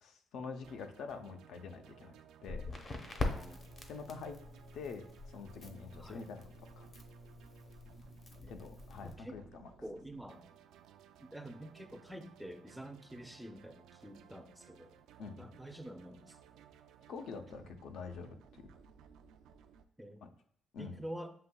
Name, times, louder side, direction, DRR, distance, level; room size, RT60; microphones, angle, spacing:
voice 1, 0.0-2.1 2.4-2.7 3.9-4.4 4.7-5.1 5.3-6.9 8.5-9.7 15.2-15.5 17.1-18.6 20.2-20.3 20.7-21.0, left 5 dB, 75° left, 6 dB, 0.6 m, -46 dB
sound 1, 0.6-19.8, right 8 dB, 85° right, 0.3 m, -60 dB
Crackle, 2.4-9.1, left 3 dB, 40° left, 0.8 m, -43 dB
voice 2, 3.2-3.6 6.0-6.2 8.4-8.5 9.0-9.4 9.8-10.5 11.2-15.0 15.4-16.4 20.0-20.2 20.8-21.3, right 1 dB, 5° right, 7 dB, 0.4 m, -47 dB
7.4 x 2.7 x 2.2 m, 0.66 s
cardioid pair, 90°, 0 cm